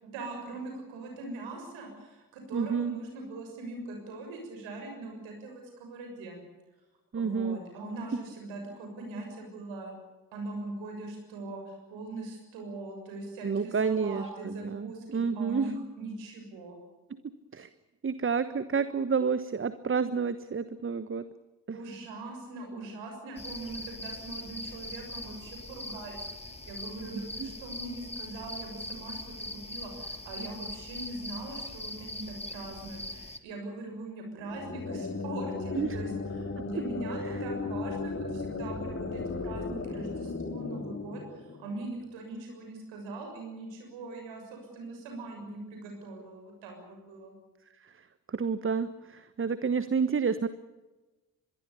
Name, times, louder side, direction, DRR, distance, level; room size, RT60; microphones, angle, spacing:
voice 1, 0.0-6.4 7.1-9.9 10.3-16.8 21.7-47.3, right 2 dB, 70° right, 3 dB, 6.9 m, -41 dB
voice 2, 2.5-3.0 7.1-7.6 13.4-15.7 17.5-17.7 18.0-21.2 21.7-21.8 27.1-27.5 35.7-36.0 36.6-36.7 48.3-50.5, right 5 dB, 25° right, 13 dB, 1.3 m, -29 dB
sound 1, 23.4-33.4, left 1 dB, 15° left, 2.4 m, -41 dB
sound 2, 34.4-42.0, left 3 dB, 30° left, 3.3 m, -36 dB
25.5 x 22.5 x 7.0 m, 1.1 s
figure-of-eight pair, 45°, 47 cm